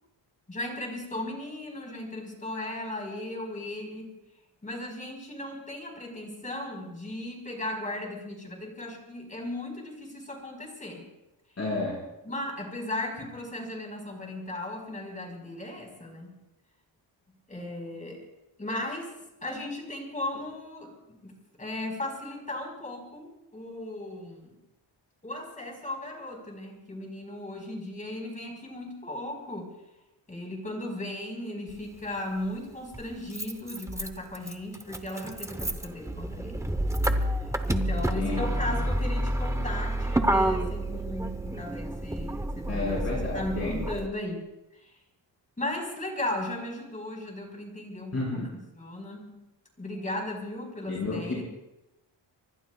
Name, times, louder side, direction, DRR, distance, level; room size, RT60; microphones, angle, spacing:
voice 1, 0.5-4.1 4.6-11.0 12.2-16.4 17.5-18.2 18.6-19.1 19.4-24.5 25.2-29.7 30.3-36.6 37.7-44.4 44.7-44.9 45.6-48.5 48.8-49.4 49.8-51.4, left 1 dB, 15° left, 1 dB, 4.6 m, -36 dB
voice 2, 11.6-12.0 38.1-38.8 42.7-43.8 48.1-48.5 50.9-51.4, left 3 dB, 35° left, -5 dB, 5.2 m, -31 dB
Motor vehicle (road), 31.7-31.8 32.9-44.1, right 1 dB, 5° right, 0.8 m, -29 dB
26.5 x 23.5 x 2.3 m, 0.94 s
wide cardioid pair, 155°, 45 cm